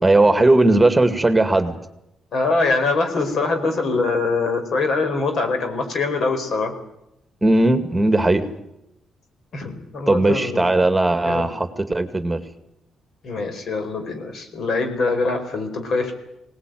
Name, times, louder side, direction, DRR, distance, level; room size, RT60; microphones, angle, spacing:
voice 1, 0.0-1.8 7.4-8.5 10.1-12.4, right 2 dB, 15° right, 9 dB, 2.1 m, -17 dB
voice 2, 2.3-6.7 9.5-10.7 11.2-11.5 13.2-16.1, left 3 dB, 65° left, 7 dB, 4.8 m, -23 dB
20.5 x 18.5 x 9.3 m, 0.87 s
supercardioid pair, 65°, 0 cm